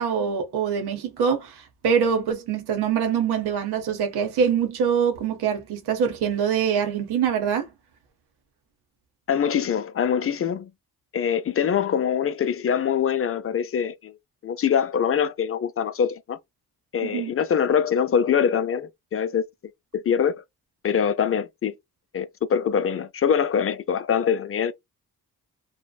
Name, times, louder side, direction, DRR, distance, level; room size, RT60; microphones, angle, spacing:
voice 1, 0.0-7.7 17.0-17.3, right 7 dB, 90° right, 0.7 m, -24 dB
voice 2, 9.3-10.7 11.1-14.1 14.4-16.4 16.9-19.4 19.9-20.4 20.8-21.7 22.1-24.7, left 7 dB, 35° left, 0.4 m, -23 dB
2.7 x 2.0 x 2.2 m
cardioid pair, 60°, 38 cm